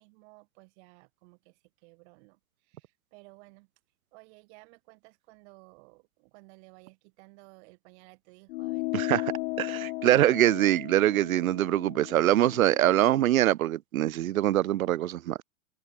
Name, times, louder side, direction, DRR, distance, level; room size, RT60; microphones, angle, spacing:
voice 1, 0.0-3.7 4.1-9.4 9.6-9.9, right 29 dB, 55° right, 7.2 m, -56 dB
sound 1, 8.5-13.3, left 23 dB, 55° left, 1.8 m, -36 dB
voice 2, 9.6-15.4, right 13 dB, 90° right, 0.7 m, -24 dB
open air
hypercardioid pair, 125°, 40 cm